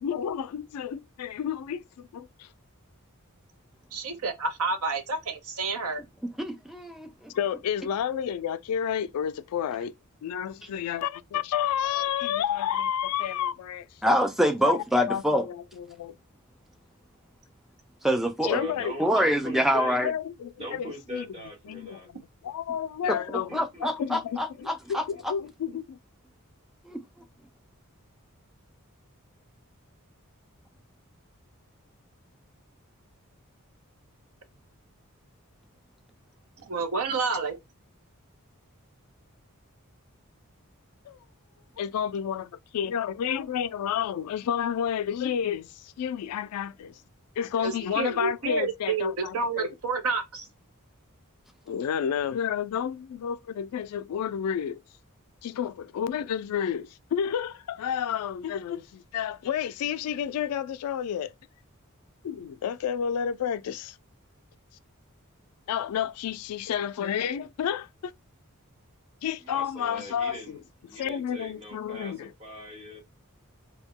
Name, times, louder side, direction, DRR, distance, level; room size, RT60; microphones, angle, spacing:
voice 1, 0.0-2.5 7.3-9.9 10.2-13.9 14.6-16.1 18.4-18.9 20.0-20.9 21.1-21.3 21.7-22.2 22.4-26.0 41.1-41.2 41.8-47.0 47.4-49.7 51.7-54.8 55.4-61.3 62.2-63.9 65.7-68.1 69.2-70.6 71.0-72.3, left 8 dB, 90° left, 0.3 m, -30 dB
voice 2, 3.9-6.0 36.6-37.5 47.6-50.5, right 4 dB, 75° right, 0.6 m, -29 dB
voice 3, 6.4-7.1 14.0-15.5 18.0-18.6 19.0-20.1 23.0-23.2 23.5-25.3 26.9-27.0, equal, ahead, 0.3 m, -25 dB
voice 4, 18.4-20.0 20.6-22.1 23.5-25.8 69.4-73.0, equal, 30° right, 1.0 m, -42 dB
2.2 x 2.1 x 3.5 m
head